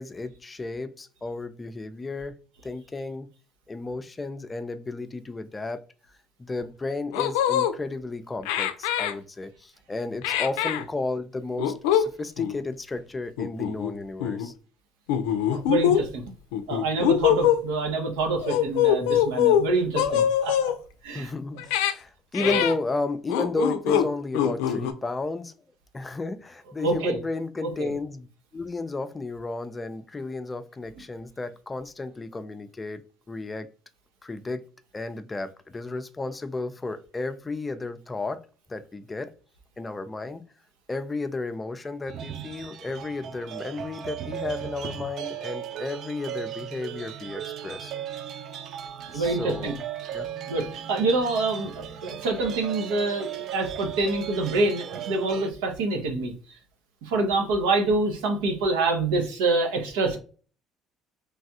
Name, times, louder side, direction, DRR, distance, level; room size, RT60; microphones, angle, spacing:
voice 1, 0.0-2.4 2.6-3.3 3.7-5.8 6.4-14.5 21.1-25.5 25.9-28.3 28.5-33.7 34.2-34.6 34.9-38.4 38.7-39.3 39.8-40.4 40.9-47.9 49.1-49.8 50.1-50.3, left 3 dB, 25° left, 0.4 m, -33 dB
sound 1, 6.6-6.7 7.1-7.7 8.4-9.1 10.2-10.8 11.6-12.0 12.4-12.5 13.4-13.9 14.2-14.5 15.1-16.0 16.5-17.6 18.4-19.7 19.9-20.7 21.6-21.9 22.3-22.7 23.3-24.1 24.3-24.9, left 10 dB, 90° left, 0.4 m, -23 dB
voice 2, 15.5-16.2 16.7-20.7 21.0-21.3 22.4-22.6 26.8-27.2 27.6-27.9 49.1-49.7 50.5-56.3 57.0-60.2, right 3 dB, 90° right, 0.8 m, -26 dB
sound 2, 42.1-55.5, right 10 dB, 60° right, 0.3 m, -37 dB
3.3 x 2.3 x 2.7 m
supercardioid pair, 80°, 0 cm